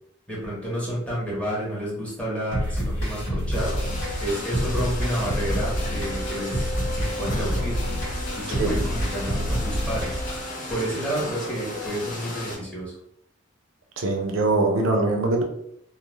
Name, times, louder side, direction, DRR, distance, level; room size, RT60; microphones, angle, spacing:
voice 1, 0.3-3.7 4.2-10.2 10.7-13.0, equal, 5° left, -6 dB, 1.0 m, -30 dB
sound 1, 2.5-10.5, equal, 85° left, 1.4 m, -28 dB
sound 2, 3.5-12.5, left 1 dB, 45° left, 0.7 m, -34 dB
voice 2, 14.0-15.4, right 2 dB, 85° right, 2 dB, 0.5 m, -22 dB
2.4 x 2.3 x 3.1 m, 0.72 s
head